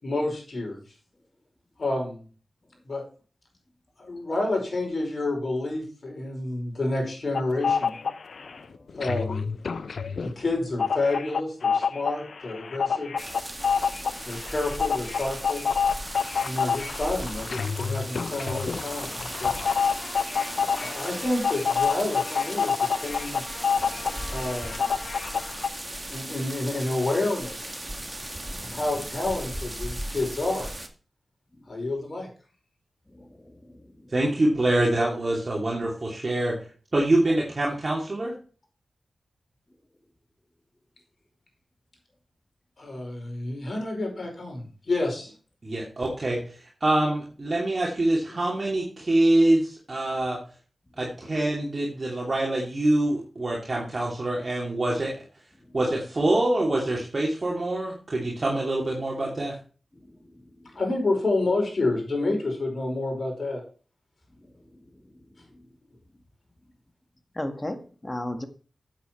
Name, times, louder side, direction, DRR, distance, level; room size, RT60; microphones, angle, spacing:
voice 1, 0.0-0.8 1.8-2.2 2.9-3.0 4.0-7.9 8.9-9.5 10.2-13.1 14.2-15.7 16.4-19.5 20.7-23.5 24.3-24.8 26.1-27.8 28.6-30.7 31.7-32.3 42.8-45.3 60.7-63.6, left 2 dB, 60° left, 2 dB, 5.0 m, -29 dB
sound 1, 7.3-8.6 8.9-25.7, left 6 dB, 75° left, 0.6 m, -28 dB
sound 2, 13.2-30.9, right 1 dB, 20° right, 1.8 m, -37 dB
voice 2, 20.4-20.9 33.1-34.1 60.1-60.3 67.3-68.5, left 1 dB, 25° left, 8 dB, 1.7 m, -36 dB
voice 3, 34.1-36.5 36.9-38.3 45.6-50.4 51.0-55.1 55.7-59.5, right 1 dB, 45° right, -3 dB, 2.7 m, -25 dB
8.5 x 8.0 x 4.5 m, 0.38 s
cardioid pair, 45°, 0 cm